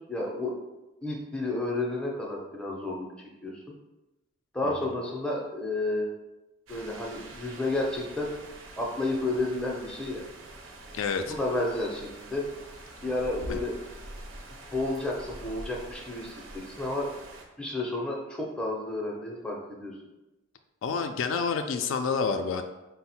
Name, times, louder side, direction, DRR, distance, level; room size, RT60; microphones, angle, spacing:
voice 1, 0.1-0.6 1.0-3.1 3.4-3.7 4.5-6.1 6.7-8.3 8.8-10.2 11.2-12.5 13.0-13.8 14.7-16.4 16.7-17.1 17.6-19.9, left 2 dB, 5° left, -2 dB, 0.5 m, -31 dB
voice 2, 4.6-5.0 10.9-11.3 13.5-13.6 20.8-22.6, left 5 dB, 70° left, 6 dB, 0.3 m, -29 dB
sound 1, 6.7-17.5, right 1 dB, 70° right, 0.6 m, -45 dB
4.5 x 2.0 x 4.2 m, 1.0 s
head